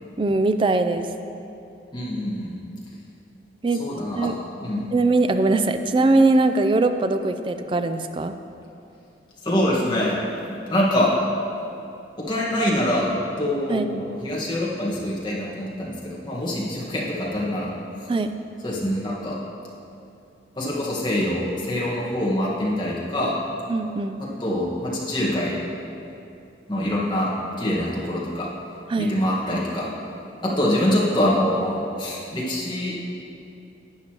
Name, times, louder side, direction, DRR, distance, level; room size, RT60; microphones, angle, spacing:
voice 1, 0.2-1.1 3.6-3.8 4.2-4.3 4.9-8.3 13.7-13.9 18.1-18.4 23.7-24.2 28.9-29.2, right 2 dB, 30° right, 8 dB, 0.3 m, -21 dB
voice 2, 1.9-2.5 3.8-4.3 4.6-4.9 9.4-10.2 10.7-11.1 12.2-13.1 13.4-17.7 18.6-19.4 20.6-23.4 24.4-25.6 26.7-27.3 27.6-28.5 29.0-29.9 30.4-32.9, left 1 dB, 25° left, -5 dB, 1.5 m, -24 dB
11.5 x 9.2 x 2.9 m, 2.7 s
head